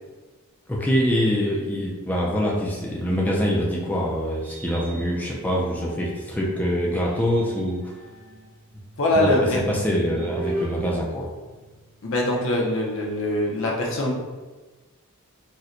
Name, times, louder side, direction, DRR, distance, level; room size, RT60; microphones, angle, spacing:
voice 1, 0.7-7.9 9.1-9.3 9.5-11.3, equal, 5° left, -4 dB, 0.3 m, -24 dB
sound 1, 4.3-6.4 6.9-12.1, right 2 dB, 65° right, 0.5 m, -39 dB
voice 2, 9.0-9.6 12.0-14.1, left 1 dB, 60° left, -2 dB, 0.6 m, -22 dB
4.1 x 2.1 x 2.5 m, 1.3 s
head